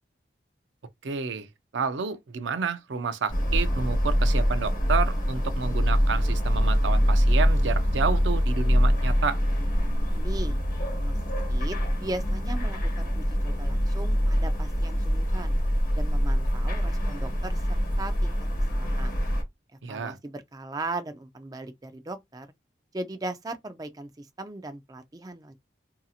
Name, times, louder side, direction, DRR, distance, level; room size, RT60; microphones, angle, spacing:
voice 1, 1.0-1.5 1.7-9.4 19.8-20.2, right 5 dB, 75° right, 0.5 m, -30 dB
sound 1, 3.3-19.4, equal, 45° left, 1.0 m, -24 dB
voice 2, 10.1-10.6 10.9-11.2 11.5-15.6 15.9-18.3 18.7-19.1 19.9-22.5 22.9-25.5, right 2 dB, 20° right, 0.4 m, -38 dB
2.7 x 2.7 x 2.4 m
head